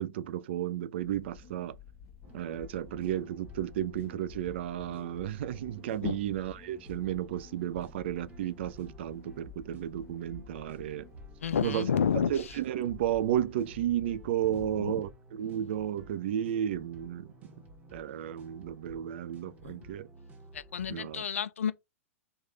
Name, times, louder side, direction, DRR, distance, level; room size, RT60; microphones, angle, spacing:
voice 1, 0.0-1.8 2.3-11.1 11.6-11.9 12.3-17.3 17.9-20.1 20.9-21.2, right 11 dB, 50° right, 0.4 m, -33 dB
sound 1, 1.0-14.7, left 5 dB, 35° left, 1.1 m, -52 dB
sound 2, 2.2-21.1, right 2 dB, 20° right, 0.9 m, -54 dB
voice 2, 11.4-12.6 14.5-15.0 19.6-19.9 20.5-21.7, left 7 dB, 70° left, 0.4 m, -31 dB
3.1 x 2.2 x 3.9 m
figure-of-eight pair, 100°, 8 cm